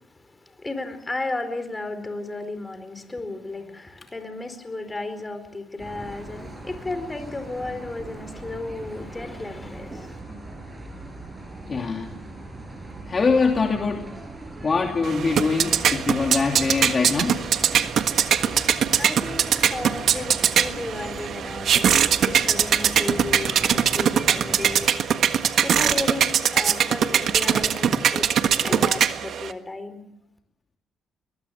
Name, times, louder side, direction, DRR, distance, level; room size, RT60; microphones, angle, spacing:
voice 1, 0.0-10.2 18.4-25.3 25.6-28.3 28.5-30.0, left 2 dB, 20° left, 4.4 m, -34 dB
sound 1, 5.8-24.9, right 2 dB, 25° right, 6.3 m, -39 dB
voice 2, 11.7-12.1 13.1-14.0 14.6-17.4, left 4 dB, 35° left, 2.7 m, -23 dB
sound 2, 15.0-29.5, right 8 dB, 65° right, 1.5 m, -22 dB
22.5 x 21.0 x 8.2 m
cardioid pair, 90°, 0 cm